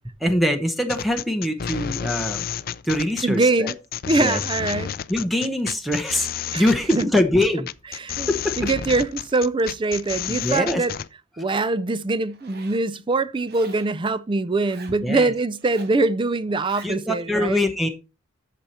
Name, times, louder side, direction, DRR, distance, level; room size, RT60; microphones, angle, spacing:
voice 1, 0.2-2.5 2.8-3.7 4.2-4.4 5.1-7.7 8.3-8.5 10.3-10.8 15.0-15.3 16.8-17.9, left 1 dB, ahead, 0.8 m, -23 dB
sound 1, 0.9-11.1, left 9 dB, 50° left, 0.4 m, -31 dB
voice 2, 3.2-3.8 4.1-4.9 6.5-6.6 6.9-7.1 8.0-8.3 8.6-10.9 11.4-17.6, right 3 dB, 25° right, 0.4 m, -23 dB
Zipper (clothing), 12.3-12.9 13.5-14.0 14.5-15.0 15.5-16.0 16.5-16.9, right 4 dB, 55° right, 1.3 m, -45 dB
8.9 x 6.7 x 4.2 m
head